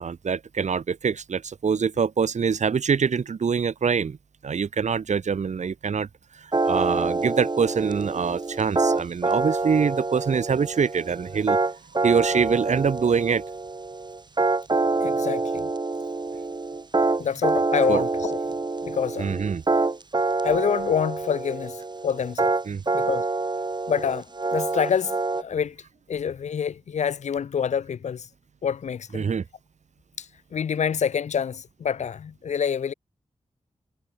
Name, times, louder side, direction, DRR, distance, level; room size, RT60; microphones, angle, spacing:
voice 1, 0.0-4.2 4.4-6.1 6.4-11.6 12.0-13.4 17.9-18.0 19.2-19.6 22.7-22.8 29.1-29.4, right 6 dB, 75° right, 1.5 m, -24 dB
sound 1, 6.5-25.4, right 3 dB, 35° right, 1.3 m, -26 dB
voice 2, 15.0-15.7 17.2-18.4 18.8-19.4 20.4-22.5 22.9-23.3 23.9-24.3 24.5-25.8 26.1-28.3 28.6-29.3 30.2-32.9, left 7 dB, 75° left, 0.5 m, -27 dB
cardioid pair, 55°, 12 cm